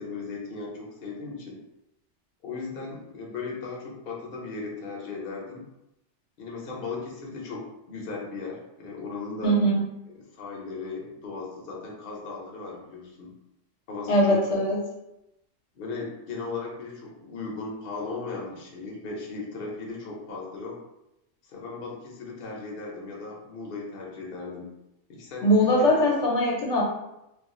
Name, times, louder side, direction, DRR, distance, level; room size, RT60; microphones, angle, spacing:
voice 1, 0.0-1.6 2.4-5.7 6.4-9.6 10.1-13.3 13.9-14.4 15.7-20.8 21.4-24.7 25.1-25.5 25.8-26.1, left 4 dB, 55° left, -2 dB, 0.8 m, -37 dB
voice 2, 9.4-9.8 14.1-14.8 25.4-26.8, equal, 75° left, -2 dB, 1.0 m, -21 dB
2.4 x 2.3 x 3.6 m, 0.87 s
omnidirectional pair, 1.3 m